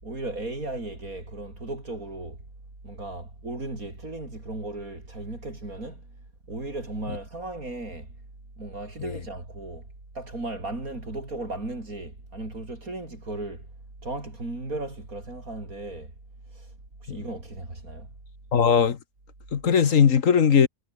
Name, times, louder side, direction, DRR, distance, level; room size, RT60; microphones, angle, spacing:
voice 1, 0.0-2.4 2.8-6.1 6.5-8.2 8.6-9.9 10.1-13.7 14.0-16.1 16.5-16.7 17.0-18.1, right 2 dB, 75° right, 6.6 m, -36 dB
voice 2, 18.5-19.0 19.5-20.7, left 7 dB, 65° left, 1.6 m, -19 dB
omnidirectional pair, 1.5 m